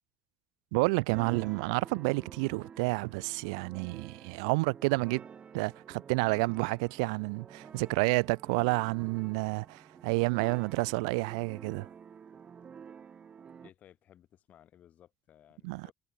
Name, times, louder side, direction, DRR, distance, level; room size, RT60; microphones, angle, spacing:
voice 1, 0.7-5.2 5.5-11.9 15.6-15.9, right 29 dB, 85° right, 0.3 m, -30 dB
sound 1, 1.1-13.7, right 7 dB, 40° right, 7.5 m, -50 dB
voice 2, 13.6-15.9, left 10 dB, 55° left, 6.3 m, -59 dB
supercardioid pair, 80°, 3 cm